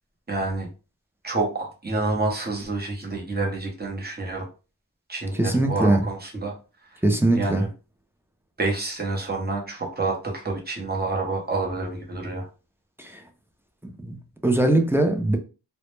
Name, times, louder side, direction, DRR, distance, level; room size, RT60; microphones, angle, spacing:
voice 1, 0.3-0.7 1.2-4.5 5.1-6.5 7.3-7.7 8.6-12.5, right 3 dB, 25° right, 0.7 m, -28 dB
voice 2, 5.3-6.1 7.0-7.7 13.0-13.2 13.8-15.4, right 1 dB, 5° right, 0.3 m, -22 dB
2.1 x 2.0 x 3.0 m
wide cardioid pair, 65°, 42 cm